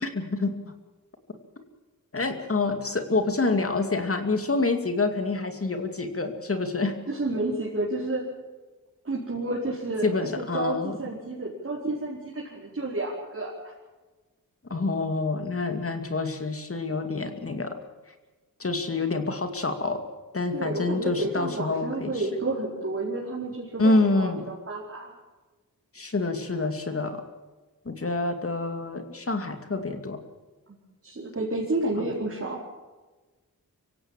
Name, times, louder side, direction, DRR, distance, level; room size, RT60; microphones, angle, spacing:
voice 1, 0.0-0.7 2.1-7.0 10.0-11.0 14.7-17.8 18.6-20.0 20.3-22.3 23.8-24.4 25.9-27.2 27.9-30.2, left 3 dB, 40° left, 7 dB, 2.5 m, -27 dB
voice 2, 7.1-8.2 9.0-13.7 20.5-25.1 31.0-32.6, right 2 dB, 45° right, -5 dB, 4.8 m, -30 dB
25.0 x 16.5 x 7.4 m, 1.2 s
wide cardioid pair, 100°, 34 cm